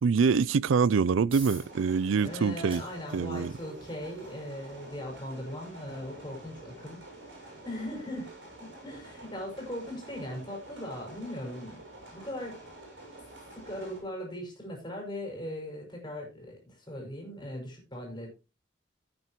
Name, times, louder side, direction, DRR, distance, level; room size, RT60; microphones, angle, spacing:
voice 1, 0.0-2.8 3.1-3.5, right 5 dB, 85° right, 0.4 m, -25 dB
sound 1, 1.3-15.7, right 3 dB, 30° right, 6.2 m, -56 dB
sound 2, 1.5-14.0, right 2 dB, 60° right, 6.8 m, -48 dB
voice 2, 2.2-7.0 7.3-8.3 8.6-11.8 12.1-12.6 13.5-18.3, left 1 dB, 25° left, 5.7 m, -39 dB
15.0 x 9.2 x 3.0 m
head